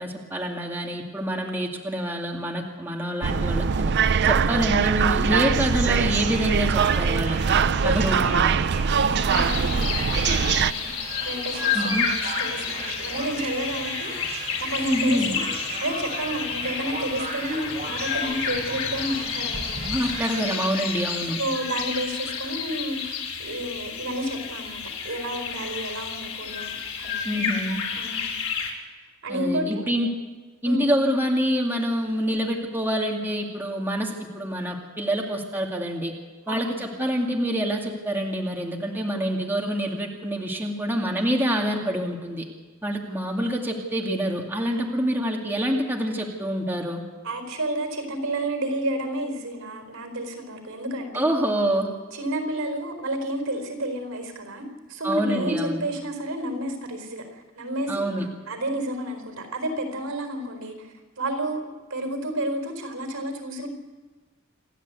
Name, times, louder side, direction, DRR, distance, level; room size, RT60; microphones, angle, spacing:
voice 1, 0.0-3.9 4.2-8.6 11.7-12.1 14.8-15.3 19.8-21.4 27.2-27.8 29.3-30.1 30.6-36.1 36.5-42.4 42.8-47.0 51.1-51.9 55.0-55.8 57.9-58.3, equal, 10° right, 0 dB, 2.3 m, -26 dB
sound 1, 3.2-10.7, right 6 dB, 55° right, 0.5 m, -22 dB
sound 2, 5.8-20.7, right 3 dB, 35° right, 5.5 m, -37 dB
voice 2, 7.9-8.2 9.0-10.9 11.2-15.4 15.8-19.9 21.4-27.3 27.9-28.3 29.2-29.8 30.6-30.9 36.5-36.8 47.2-51.4 52.1-58.1 58.5-61.6 61.9-63.7, right 1 dB, 70° right, 5 dB, 4.4 m, -31 dB
sound 3, 9.3-28.7, left 6 dB, 90° left, 4.2 m, -31 dB
28.0 x 11.5 x 8.3 m, 1.4 s
head